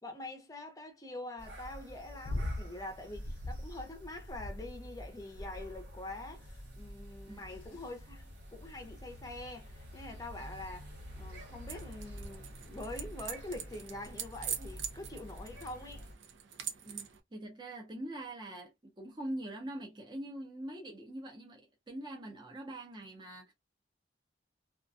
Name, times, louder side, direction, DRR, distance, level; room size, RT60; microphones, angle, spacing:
voice 1, 0.0-10.9 11.2-16.1, left 2 dB, 20° left, 0.6 m, -45 dB
sound 1, 1.4-16.1, equal, 70° right, 1.0 m, -49 dB
sound 2, 2.2-2.7 3.1-3.7 4.2-4.9 5.4-5.8 6.5-6.8 7.5-7.9 8.8-8.9, left 1 dB, 85° left, 0.5 m, -39 dB
sound 3, 11.7-17.2, right 8 dB, 90° right, 0.5 m, -43 dB
voice 2, 16.8-23.5, right 1 dB, 25° right, 0.6 m, -43 dB
2.3 x 2.2 x 2.5 m
head